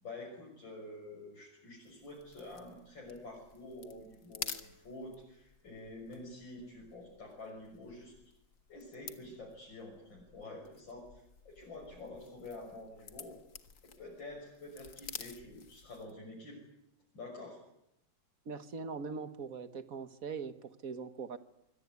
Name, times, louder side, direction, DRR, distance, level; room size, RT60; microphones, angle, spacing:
voice 1, 0.0-8.1 8.7-13.4 14.0-16.6 17.1-17.6, left 2 dB, 75° left, -2 dB, 7.2 m, -48 dB
sound 1, 1.8-16.2, left 6 dB, 50° left, 2.1 m, -51 dB
voice 2, 18.4-21.4, right 5 dB, 50° right, 11 dB, 1.7 m, -41 dB
25.0 x 23.0 x 9.5 m, 0.82 s
omnidirectional pair, 2.1 m